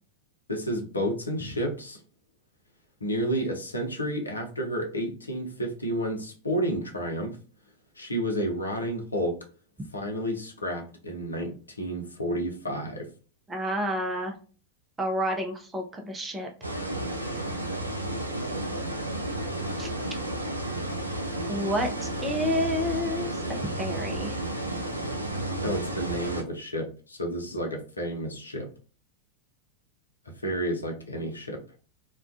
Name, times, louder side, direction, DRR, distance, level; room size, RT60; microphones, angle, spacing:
voice 1, 0.5-2.0 3.0-7.4 8.0-9.4 9.9-13.1 25.6-28.7 30.4-31.6, equal, 80° left, 2 dB, 0.6 m, -31 dB
voice 2, 13.5-14.3 15.0-16.7 19.8-19.9 21.5-23.4 23.8-24.4, equal, 15° right, 2 dB, 0.5 m, -29 dB
sound 1, 16.6-26.4, right 1 dB, 85° right, 0.3 m, -32 dB
2.3 x 2.2 x 2.4 m, 0.38 s
figure-of-eight pair, 90°, 0 cm